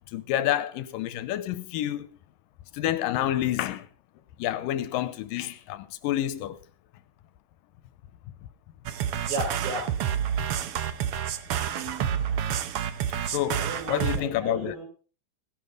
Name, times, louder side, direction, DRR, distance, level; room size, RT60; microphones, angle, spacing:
voice 1, 0.1-2.1 2.7-3.9 4.4-6.6 13.2-14.7, left 13 dB, 90° left, 2.5 m, -28 dB
sound 1, 8.9-14.2, right 9 dB, 75° right, 1.3 m, -29 dB
voice 2, 9.2-9.9 13.5-14.9, right 2 dB, 60° right, 6.2 m, -34 dB
18.0 x 11.5 x 3.8 m
omnidirectional pair, 3.9 m